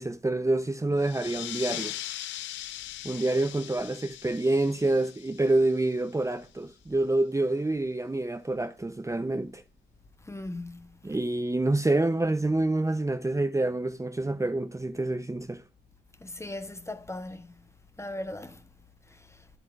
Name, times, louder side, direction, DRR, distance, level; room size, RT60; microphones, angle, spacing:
voice 1, 0.0-1.9 3.0-9.6 11.0-15.6, right 2 dB, 15° right, 0.8 m, -27 dB
sound 1, 1.0-6.2, left 14 dB, 85° left, 0.5 m, -40 dB
voice 2, 10.2-10.9 16.2-17.5 18.0-18.6 19.1-19.2, left 1 dB, 15° left, 1.1 m, -38 dB
9.8 x 8.1 x 2.6 m
supercardioid pair, 50°, 18 cm